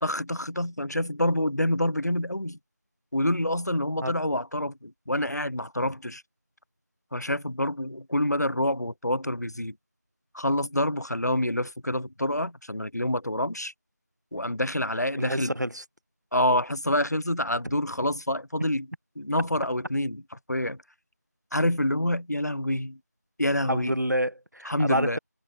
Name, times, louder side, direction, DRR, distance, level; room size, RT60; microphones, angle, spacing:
voice 1, 0.0-2.6 3.1-6.2 7.1-9.7 10.3-13.7 14.3-15.5 16.3-18.9 19.2-20.2 20.5-20.8 21.5-23.0 23.4-23.9 24.6-25.2, left 1 dB, 70° left, 1.3 m, -27 dB
voice 2, 15.2-15.8 23.7-25.2, equal, 80° right, 4.0 m, -28 dB
figure-of-eight pair, 175°, 9 cm